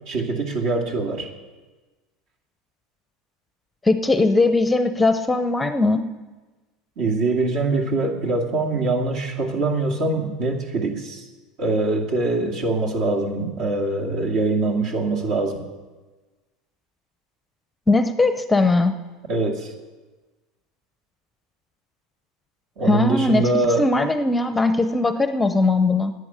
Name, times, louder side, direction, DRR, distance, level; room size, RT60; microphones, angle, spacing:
voice 1, 0.1-1.3 7.0-11.3 11.6-15.6 19.3-19.7 22.8-23.9, right 3 dB, 60° right, 0 dB, 2.4 m, -23 dB
voice 2, 3.8-6.0 17.9-19.0 22.9-26.1, left 3 dB, 10° left, 10 dB, 0.7 m, -19 dB
10.5 x 8.6 x 8.9 m, 1.2 s
supercardioid pair, 120°, 0 cm